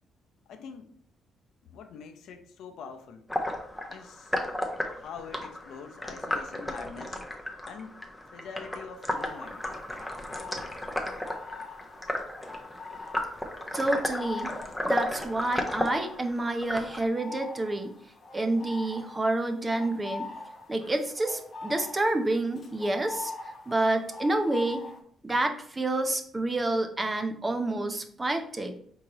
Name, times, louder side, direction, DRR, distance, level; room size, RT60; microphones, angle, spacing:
voice 1, 0.5-0.9 1.7-3.2 3.9-4.3 4.8-7.2 7.6-8.0 8.3-9.7, left 6 dB, 80° left, 6 dB, 0.5 m, -44 dB
sound 1, 3.3-17.0, left 1 dB, 5° left, 0.8 m, -34 dB
sound 2, 9.1-25.0, left 3 dB, 50° left, 1.1 m, -43 dB
voice 2, 13.7-14.5 14.8-17.9 18.3-20.3 20.7-23.3 23.7-24.8 25.2-28.7, right 2 dB, 25° right, 6 dB, 0.6 m, -28 dB
4.6 x 3.8 x 2.9 m, 0.63 s
cardioid pair, 90°, 0 cm